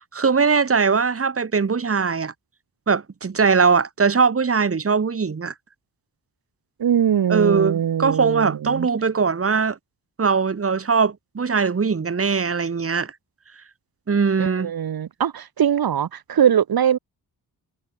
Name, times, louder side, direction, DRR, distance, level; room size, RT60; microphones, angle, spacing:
voice 1, 0.1-2.3 2.9-5.5 7.3-9.8 10.2-13.1 14.1-14.7, right 5 dB, 40° right, 2.9 m, -20 dB
voice 2, 6.8-8.9 14.4-17.0, right 9 dB, 75° right, 3.7 m, -21 dB
wide cardioid pair, 125°, 37 cm